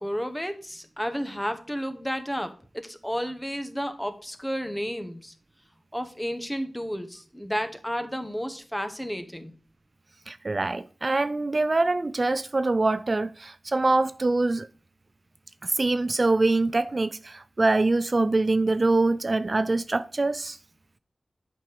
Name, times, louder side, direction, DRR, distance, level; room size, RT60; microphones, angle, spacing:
voice 1, 0.0-5.3 5.9-9.5, equal, 10° left, 1.2 m, -32 dB
voice 2, 10.3-14.7 15.6-20.6, right 2 dB, 50° right, 0.4 m, -24 dB
7.5 x 5.2 x 4.8 m
wide cardioid pair, 55°, 0 cm